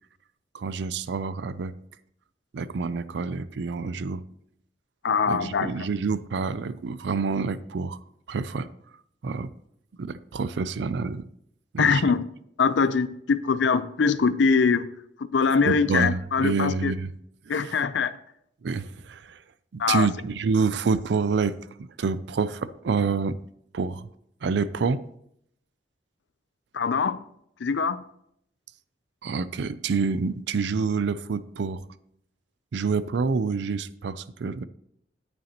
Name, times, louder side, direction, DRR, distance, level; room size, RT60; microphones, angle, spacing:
voice 1, 0.5-1.7 2.5-4.2 5.3-8.0 8.3-8.7 9.2-9.5 10.0-11.2 11.7-12.0 15.6-17.1 17.5-17.8 18.6-19.4 19.7-23.4 23.7-24.1 24.4-25.0 29.2-31.8 32.7-34.6, right 4 dB, 70° right, 16 dB, 0.4 m, -27 dB
voice 2, 5.0-5.7 11.8-12.2 12.6-14.9 15.3-16.9 17.5-18.1 19.8-20.1 26.7-27.2 27.6-28.0, left 5 dB, 80° left, 14 dB, 0.5 m, -23 dB
9.8 x 8.9 x 2.9 m, 0.72 s
head